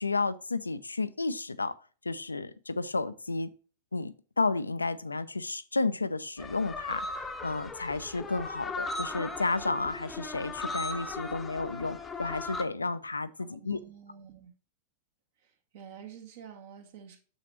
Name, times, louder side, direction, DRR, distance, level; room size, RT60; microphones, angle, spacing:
voice 1, 0.0-1.7 2.0-3.5 3.9-7.1 7.4-13.8, left 3 dB, 80° left, 14 dB, 0.5 m, -32 dB
sound 1, 6.4-12.6, left 3 dB, 15° left, 0.8 m, -38 dB
voice 2, 13.4-14.5 15.7-17.2, right 8 dB, 55° right, 3 dB, 1.9 m, -48 dB
7.5 x 6.3 x 3.0 m, 0.37 s
figure-of-eight pair, 95°, 0 cm